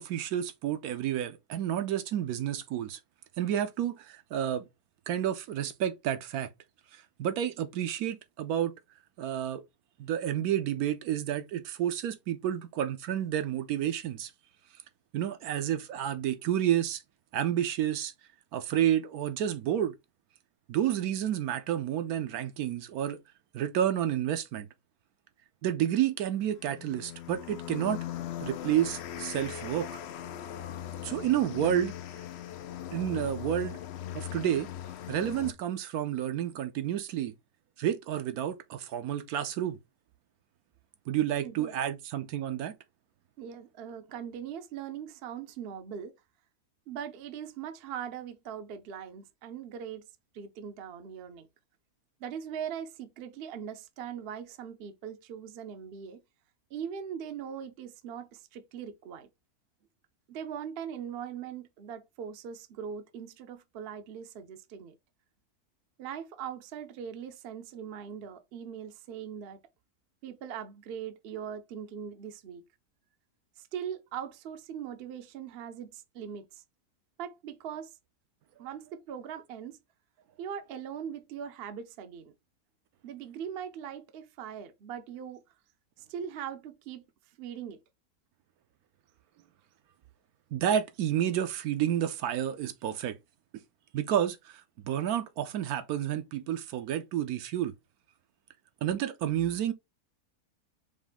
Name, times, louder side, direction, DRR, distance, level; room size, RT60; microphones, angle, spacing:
voice 1, 0.0-3.0 3.4-4.6 5.1-6.5 6.9-8.7 9.2-9.6 10.0-14.3 15.1-17.0 17.3-18.1 18.5-19.9 20.7-23.2 23.5-24.7 25.6-28.0 28.4-29.9 31.0-31.9 32.9-33.8 34.1-34.7 35.1-37.3 37.8-39.8 41.1-42.7 90.5-93.2 93.9-97.7 98.8-99.7, right 10 dB, 75° right, 1.0 m, -30 dB
sound 1, 26.4-35.5, left 11 dB, 80° left, 0.5 m, -39 dB
voice 2, 41.4-41.7 43.4-46.2 46.9-50.1 50.3-51.5 52.2-56.2 56.7-59.3 60.3-65.0 66.0-69.6 70.2-72.7 73.6-76.6 77.2-77.9 78.6-79.8 80.4-82.3 83.0-85.4 86.0-87.0 87.4-87.8, right 8 dB, 60° right, 0.7 m, -40 dB
5.0 x 2.5 x 3.5 m
omnidirectional pair, 1.6 m